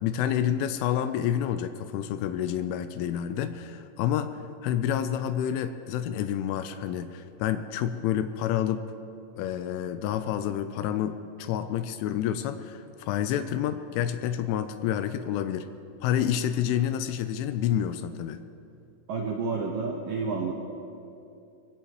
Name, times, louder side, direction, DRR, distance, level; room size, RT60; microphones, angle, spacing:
voice 1, 0.0-4.3 4.6-8.8 9.4-15.7 16.0-18.4, left 10 dB, 85° left, 10 dB, 3.1 m, -28 dB
voice 2, 19.1-20.5, right 4 dB, 90° right, 0 dB, 1.9 m, -30 dB
21.5 x 17.5 x 3.1 m, 2.6 s
omnidirectional pair, 5.6 m